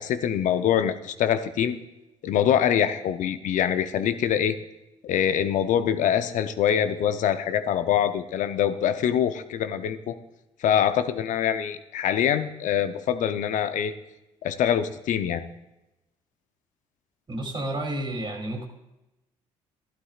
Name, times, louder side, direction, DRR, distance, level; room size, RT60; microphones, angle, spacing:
voice 1, 0.0-1.8 2.2-4.6 5.0-10.2 10.6-13.9 14.4-15.4, left 9 dB, 70° left, 10 dB, 0.7 m, -24 dB
voice 2, 17.3-18.7, right 1 dB, 35° right, 2 dB, 2.8 m, -31 dB
12.5 x 11.5 x 2.4 m, 0.93 s
hypercardioid pair, 55°, 14 cm